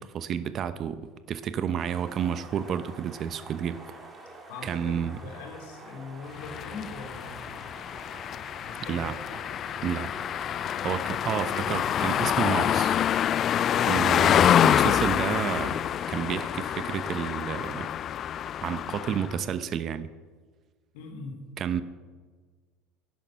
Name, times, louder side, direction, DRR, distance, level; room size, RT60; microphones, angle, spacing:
voice 1, 0.0-4.0 4.6-5.2 8.8-9.1 9.8-10.1 10.8-13.0 13.9-15.8 16.1-17.9 18.6-20.1 21.6-21.8, right 8 dB, 40° right, 12 dB, 0.9 m, -30 dB
sound 1, 1.8-17.2, right 2 dB, 25° right, 4.1 m, -47 dB
voice 2, 4.5-7.4 8.6-9.2 13.7-14.0 20.9-21.4, left 4 dB, 65° left, 4 dB, 3.2 m, -41 dB
sound 2, 6.4-19.4, left 10 dB, 40° left, 0.3 m, -26 dB
17.5 x 11.0 x 5.9 m, 1.5 s
hypercardioid pair, 75°, 0 cm